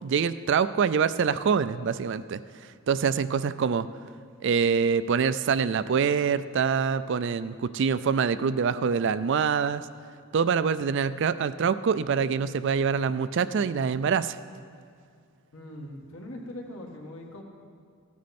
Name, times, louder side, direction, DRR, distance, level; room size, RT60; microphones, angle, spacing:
voice 1, 0.0-2.4 2.9-3.9 4.4-9.8 10.3-14.4, right 6 dB, 55° right, 14 dB, 0.3 m, -25 dB
voice 2, 15.5-17.4, left 1 dB, 75° left, 0 dB, 1.7 m, -41 dB
15.0 x 9.4 x 4.3 m, 2.2 s
head